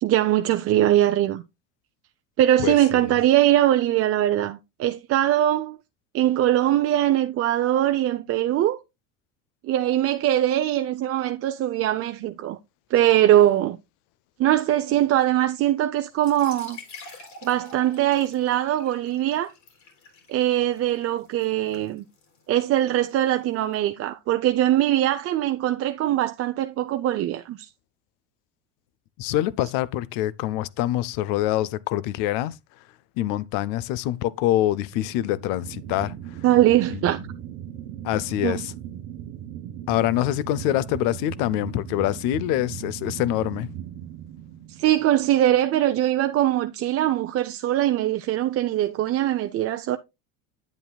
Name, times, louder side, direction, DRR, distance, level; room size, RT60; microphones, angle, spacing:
voice 1, 0.0-1.4 2.4-5.8 6.1-8.8 9.6-12.6 12.9-13.8 14.4-19.5 20.3-22.0 22.5-27.7 36.4-37.2 38.4-38.6 44.7-50.0, right 13 dB, 45° right, 0.5 m, -22 dB
voice 2, 2.6-3.2 29.2-32.8 33.2-36.4 38.0-38.7 39.9-43.7, left 14 dB, 75° left, 0.6 m, -25 dB
sound 1, 16.1-23.7, left 4 dB, 55° left, 3.8 m, -48 dB
sound 2, 34.9-45.8, right 10 dB, 80° right, 1.0 m, -38 dB
9.2 x 7.9 x 2.2 m
supercardioid pair, 105°, 33 cm